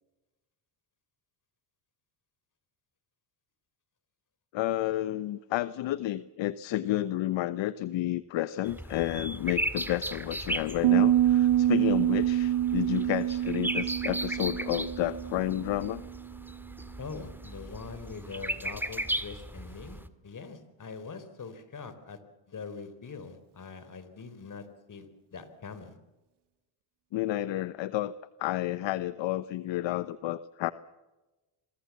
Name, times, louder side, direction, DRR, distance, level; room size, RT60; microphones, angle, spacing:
voice 1, 4.5-16.0 27.1-28.1 28.4-30.7, left 14 dB, 60° left, 15 dB, 1.0 m, -31 dB
sound 1, 8.6-20.1, right 1 dB, 5° right, 2.0 m, -37 dB
Piano, 10.8-16.4, right 12 dB, 55° right, 1.6 m, -26 dB
voice 2, 17.0-22.2 22.5-26.0, left 5 dB, 40° left, 12 dB, 4.1 m, -43 dB
27.0 x 23.0 x 7.4 m, 1.1 s
supercardioid pair, 80°, 49 cm